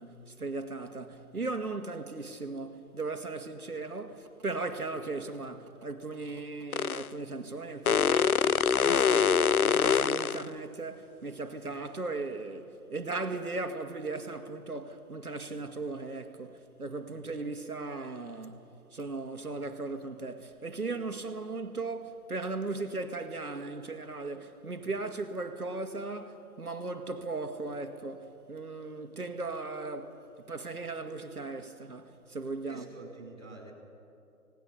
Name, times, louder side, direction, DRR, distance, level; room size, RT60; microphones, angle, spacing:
voice 1, 0.0-32.9, right 3 dB, 70° right, 2.0 m, -37 dB
sound 1, 6.7-7.1 7.9-10.5, left 6 dB, 70° left, 0.6 m, -24 dB
voice 2, 32.7-33.7, right 3 dB, 50° right, 5.4 m, -47 dB
30.0 x 18.5 x 5.6 m
figure-of-eight pair, 160°, 46 cm